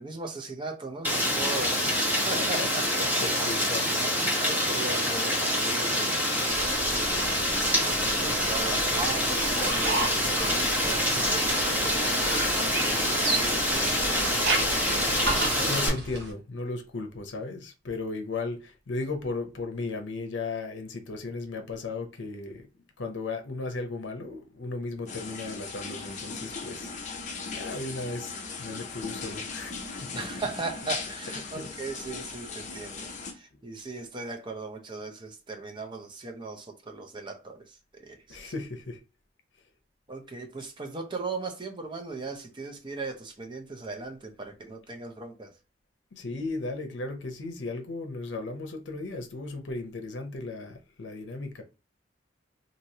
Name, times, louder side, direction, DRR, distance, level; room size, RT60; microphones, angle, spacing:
voice 1, 0.0-2.9 4.4-6.2 6.5-7.3 7.9-14.5 30.1-38.5 40.1-45.6, right 3 dB, 25° right, 0.6 m, -38 dB
Rain, 1.0-15.9, equal, 10° right, 1.1 m, -26 dB
voice 2, 2.2-2.7 3.2-4.1 15.2-22.6 23.0-26.9 27.5-30.1 31.5-31.6 33.5-33.6 38.3-39.0 46.1-51.6, left 3 dB, 75° left, 0.7 m, -36 dB
sound 1, 6.5-16.3, right 2 dB, 60° right, 0.9 m, -34 dB
sound 2, 25.1-33.3, left 4 dB, 40° left, 0.6 m, -38 dB
3.1 x 2.7 x 2.7 m
head